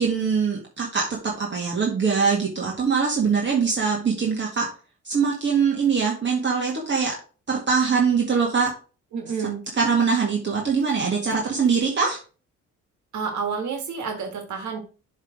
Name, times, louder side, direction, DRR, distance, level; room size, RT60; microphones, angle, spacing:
voice 1, 0.0-4.7 5.1-7.1 7.5-8.7 9.8-12.2, right 5 dB, 40° right, -2 dB, 1.9 m, -22 dB
voice 2, 9.1-9.6 13.1-14.8, right 6 dB, 70° right, 3 dB, 1.8 m, -29 dB
7.3 x 3.6 x 5.0 m, 0.37 s
cardioid pair, 90°, 30 cm